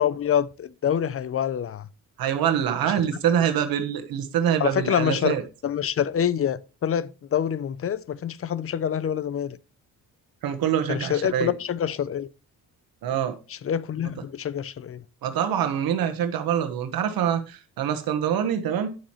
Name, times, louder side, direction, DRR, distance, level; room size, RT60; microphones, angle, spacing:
voice 1, 0.0-1.9 2.8-2.9 4.6-9.6 10.9-12.3 13.5-15.0, left 9 dB, 40° left, 0.6 m, -26 dB
voice 2, 2.2-5.4 10.4-11.5 13.0-13.4 15.2-18.9, right 9 dB, 85° right, 1.3 m, -25 dB
9.2 x 7.2 x 3.1 m
cardioid pair, 95°, 35 cm